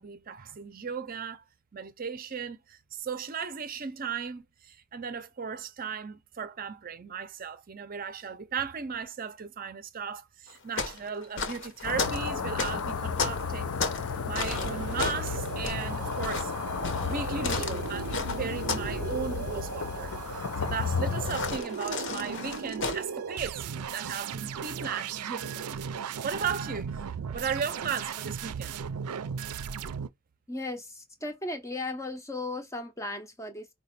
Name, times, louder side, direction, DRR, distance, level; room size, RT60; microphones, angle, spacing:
voice 1, 0.0-1.4 1.7-16.5 17.0-28.7, right 6 dB, 40° right, 0.5 m, -36 dB
sound 1, 10.5-14.1 14.3-19.0 19.2-19.6 21.2-23.0, left 4 dB, 55° left, 0.8 m, -33 dB
sound 2, 11.8-21.6, left 5 dB, 80° left, 0.6 m, -33 dB
sound 3, 14.3-30.1, right 7 dB, 90° right, 0.4 m, -37 dB
voice 2, 30.5-33.7, left 2 dB, 15° left, 0.5 m, -36 dB
5.0 x 2.2 x 4.2 m
head